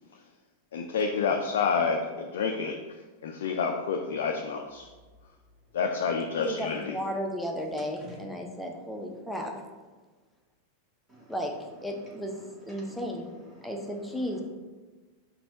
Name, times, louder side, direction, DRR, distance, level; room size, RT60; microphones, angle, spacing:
voice 1, 0.7-2.8 3.2-4.8 5.7-7.0, left 5 dB, 60° left, 3 dB, 0.3 m, -28 dB
voice 2, 6.4-9.5 11.3-11.5 11.8-12.3 12.7-13.3 13.6-14.4, equal, ahead, 1 dB, 0.6 m, -34 dB
voice 3, 7.7-8.2 9.1-9.2 11.1-14.4, equal, 15° right, -4 dB, 1.3 m, -53 dB
4.1 x 2.7 x 4.6 m, 1.3 s
figure-of-eight pair, 90°, 0 cm